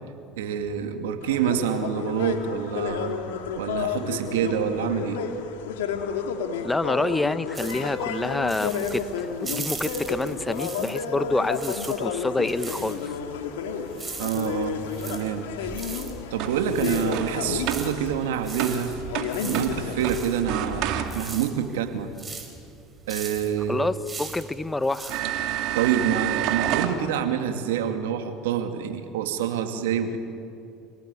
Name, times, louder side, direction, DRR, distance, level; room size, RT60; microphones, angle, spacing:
voice 1, 0.4-3.2 3.6-5.2 14.2-15.5 16.3-19.0 19.4-22.1 23.1-23.8 25.7-30.2, right 9 dB, 90° right, 6 dB, 2.4 m, -27 dB
sound 1, 1.2-20.2, left 6 dB, 90° left, 2.6 m, -31 dB
voice 2, 6.6-13.1 23.7-25.1, left 2 dB, 10° left, 14 dB, 1.0 m, -27 dB
sound 2, 7.5-11.1 11.4-26.1, right 4 dB, 20° right, 4.8 m, -40 dB
sound 3, 15.6-21.5 23.6-23.7 24.4-24.5 25.1-26.9, right 10 dB, 65° right, 2.6 m, -30 dB
27.5 x 18.5 x 9.9 m, 2.6 s
supercardioid pair, 90°, 0 cm